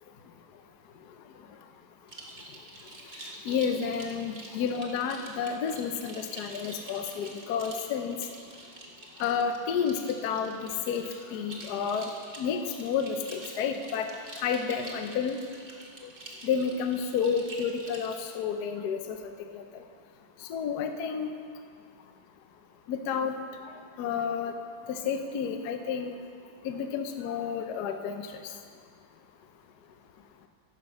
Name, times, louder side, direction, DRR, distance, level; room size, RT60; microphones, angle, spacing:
sound 1, 2.1-18.2, right 2 dB, 30° right, 1.2 m, -46 dB
voice 1, 3.4-8.2 9.2-12.1 12.4-14.1 14.4-15.4 16.4-19.6 20.5-21.3 22.9-23.3 24.0-24.5 24.9-26.1 26.6-28.3, left 6 dB, 65° left, 6 dB, 1.0 m, -30 dB
14.5 x 5.9 x 6.1 m, 2.3 s
omnidirectional pair, 2.4 m